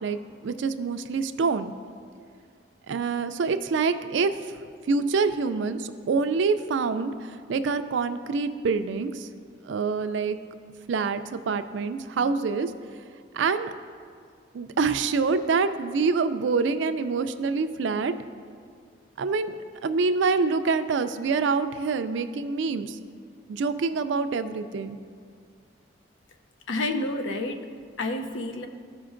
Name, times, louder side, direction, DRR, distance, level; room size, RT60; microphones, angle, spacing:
voice 1, 0.0-1.7 2.9-4.3 4.9-9.3 9.7-10.4 10.9-12.7 13.3-13.7 14.5-18.1 19.2-19.5 19.8-23.0 23.5-25.0, right 4 dB, 75° right, 10 dB, 0.4 m, -26 dB
voice 2, 26.7-27.7 28.0-28.7, left 2 dB, 80° left, 6 dB, 0.6 m, -29 dB
13.5 x 5.1 x 2.5 m, 2.2 s
head